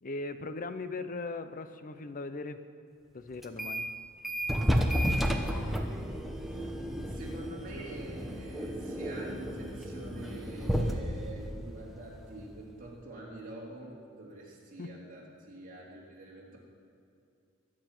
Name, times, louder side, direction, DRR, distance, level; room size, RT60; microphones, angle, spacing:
voice 1, 0.0-2.6 3.1-3.9 14.8-15.0, left 3 dB, 40° left, 11 dB, 0.6 m, -39 dB
sound 1, 3.4-3.9 4.2-12.7, equal, ahead, 1.0 m, -32 dB
voice 2, 4.6-5.3 6.4-16.6, right 2 dB, 40° right, -4 dB, 3.1 m, -46 dB
22.0 x 8.9 x 6.1 m, 2.5 s
head